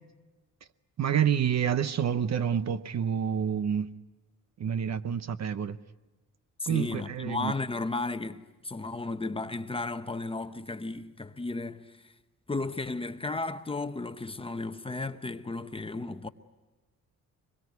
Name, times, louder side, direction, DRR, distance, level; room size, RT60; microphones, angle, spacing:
voice 1, 1.0-3.9 4.6-5.8 6.7-7.5, right 8 dB, 50° right, 0.9 m, -28 dB
voice 2, 6.6-11.9 12.5-16.3, left 3 dB, 15° left, 0.9 m, -34 dB
25.0 x 22.0 x 9.5 m
wide cardioid pair, 145°, 34 cm